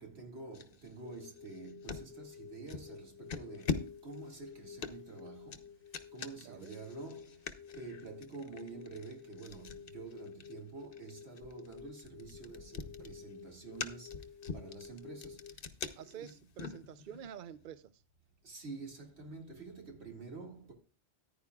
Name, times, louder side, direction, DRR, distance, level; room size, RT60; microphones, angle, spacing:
voice 1, 0.0-16.4 18.4-20.7, right 4 dB, 75° right, 2.5 m, -49 dB
sound 1, 0.5-2.1 2.7-2.9 3.3-17.3, left 5 dB, 55° left, 1.0 m, -44 dB
sound 2, 1.0-15.6, left 7 dB, 85° left, 1.1 m, -52 dB
voice 2, 6.4-6.8 16.0-17.9, right 9 dB, 55° right, 0.7 m, -48 dB
14.0 x 10.0 x 2.4 m
omnidirectional pair, 1.1 m